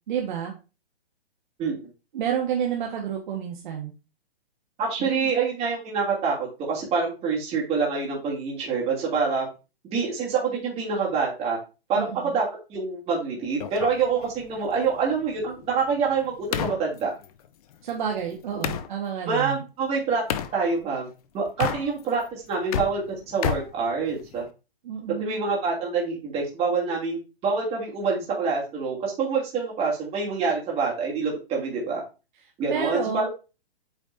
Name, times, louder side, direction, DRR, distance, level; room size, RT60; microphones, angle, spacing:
voice 1, 0.1-0.5 2.1-3.9 5.0-5.3 11.9-12.4 17.8-19.6 24.8-25.5 32.7-33.3, right 8 dB, 50° right, 0 dB, 1.6 m, -30 dB
voice 2, 4.8-9.5 9.9-11.6 11.9-17.1 19.3-20.2 20.5-21.1 21.3-24.4 25.2-32.0 32.6-33.3, right 5 dB, 20° right, -3 dB, 2.9 m, -26 dB
sound 1, 13.6-18.9 20.3-20.6 21.5-22.2 22.5-24.5, left 9 dB, 35° left, 0.6 m, -32 dB
8.3 x 5.0 x 2.7 m, 0.31 s
hypercardioid pair, 140°, 31 cm